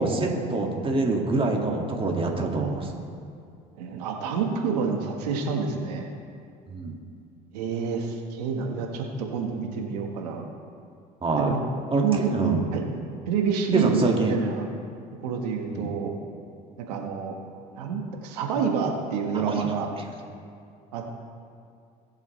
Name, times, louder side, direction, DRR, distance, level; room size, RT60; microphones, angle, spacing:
voice 1, 0.0-2.9 6.7-7.0 11.2-11.6 11.9-12.7 13.7-14.4 15.7-15.9 19.3-19.7, right 3 dB, 25° right, 0 dB, 2.2 m, -25 dB
voice 2, 3.7-6.0 7.5-10.4 11.4-11.6 12.0-12.8 13.3-14.6 15.2-16.1 16.8-17.4 17.7-19.9 20.9-21.3, right 6 dB, 90° right, 2 dB, 1.5 m, -28 dB
20.5 x 7.3 x 3.3 m, 2.3 s
supercardioid pair, 75°, 20 cm